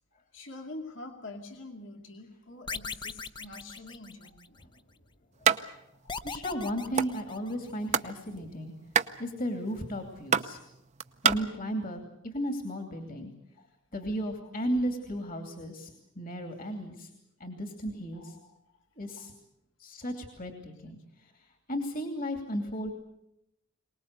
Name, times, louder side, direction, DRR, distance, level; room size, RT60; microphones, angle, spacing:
voice 1, 0.3-4.6 6.0-6.1 13.6-13.7 14.4-14.5 18.1-18.6 19.1-19.3 20.1-20.2, left 2 dB, 70° left, 4 dB, 2.4 m, -46 dB
sound 1, 2.7-4.6 6.1-7.9, left 4 dB, 25° left, 0.8 m, -39 dB
sound 2, 5.4-5.6 5.9-6.0 6.3-7.1 7.6-8.2 8.4-11.4, right 7 dB, 35° right, 0.8 m, -26 dB
voice 2, 6.2-8.7 9.2-10.6 11.2-13.3 13.9-17.1 17.4-18.4 18.9-19.3 19.8-21.3 21.7-22.9, equal, 45° left, 5 dB, 2.8 m, -35 dB
23.5 x 19.5 x 8.2 m, 0.82 s
head